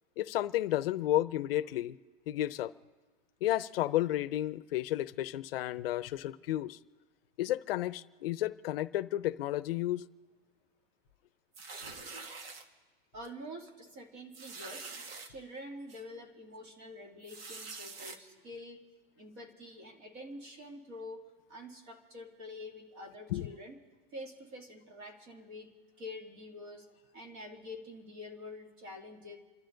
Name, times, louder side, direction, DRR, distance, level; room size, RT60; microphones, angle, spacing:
voice 1, 0.2-2.0 2.3-2.7 3.4-6.8 7.4-10.1 23.3-23.5, left 14 dB, 70° left, 0.6 m, -32 dB
sound 1, 11.5-12.6 13.3-13.4 13.7-13.8 14.3-15.3 15.9-16.0 17.2-18.2, right 4 dB, 75° right, 1.8 m, -45 dB
voice 2, 13.1-15.0 15.3-18.8 19.2-23.8 24.1-29.4, left 1 dB, 40° right, 2.6 m, -47 dB
29.5 x 12.5 x 3.9 m
supercardioid pair, 175°, 30 cm